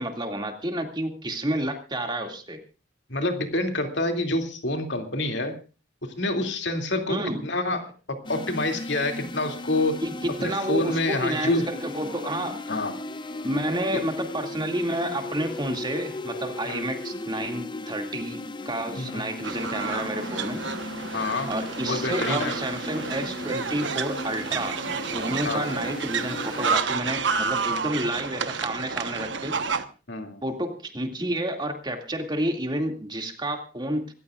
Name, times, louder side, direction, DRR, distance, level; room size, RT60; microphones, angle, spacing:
voice 1, 0.0-2.6 7.1-7.4 10.0-12.6 13.4-20.6 21.5-29.7 30.4-34.1, right 1 dB, 25° right, 4 dB, 2.3 m, -30 dB
voice 2, 3.1-5.6 6.2-10.0 10.4-11.7 12.7-12.9 16.6-16.9 19.0-19.3 21.1-21.5 21.8-22.5 25.4-25.7 30.1-30.4, left 2 dB, 60° left, 5 dB, 2.6 m, -27 dB
sound 1, 8.2-26.8, left 2 dB, 25° left, 0.7 m, -37 dB
sound 2, 19.4-29.8, right 5 dB, 65° right, 1.2 m, -30 dB
26.5 x 14.5 x 2.5 m, 0.33 s
head